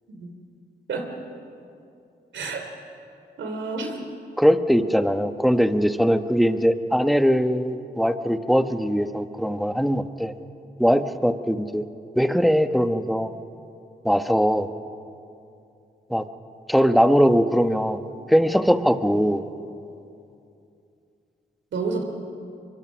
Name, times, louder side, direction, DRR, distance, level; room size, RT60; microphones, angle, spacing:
voice 1, 2.3-2.6 3.4-4.0 21.7-22.0, right 4 dB, 85° right, 4 dB, 3.0 m, -29 dB
voice 2, 4.4-10.3 10.8-11.8 12.1-13.3 14.0-14.7 16.1-16.2 16.7-18.0 18.3-19.5, equal, ahead, 9 dB, 1.2 m, -21 dB
23.5 x 23.0 x 6.3 m, 2.6 s
cardioid pair, 50°, 19 cm